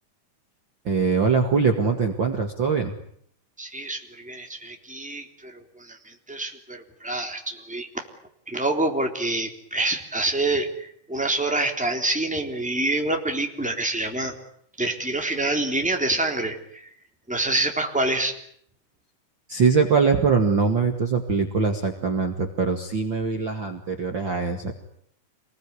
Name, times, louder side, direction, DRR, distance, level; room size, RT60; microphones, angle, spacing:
voice 1, 0.9-2.9 19.5-24.7, right 5 dB, 40° right, 5 dB, 2.4 m, -22 dB
voice 2, 3.6-8.0 8.5-14.3 14.8-16.9 17.3-18.4, right 2 dB, ahead, 3 dB, 3.2 m, -27 dB
27.5 x 20.5 x 9.7 m, 0.67 s
omnidirectional pair, 3.6 m